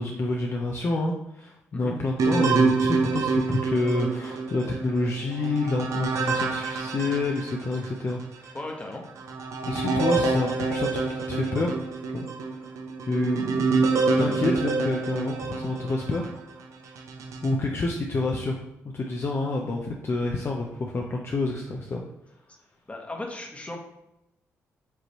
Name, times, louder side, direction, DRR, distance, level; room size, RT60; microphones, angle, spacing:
voice 1, 0.0-8.6 9.7-11.8 12.1-12.3 13.1-13.9 14.2-16.3 17.4-18.6 18.9-22.0, left 2 dB, 45° left, 0 dB, 0.6 m, -28 dB
sound 1, 2.2-7.9 8.5-8.6 9.2-16.4 17.0-17.6, right 4 dB, 65° right, 0.6 m, -27 dB
voice 2, 8.5-9.0 14.1-14.5 22.9-23.8, left 1 dB, 20° left, 2 dB, 1.1 m, -36 dB
5.3 x 3.0 x 3.0 m, 0.87 s
supercardioid pair, 55°, 6 cm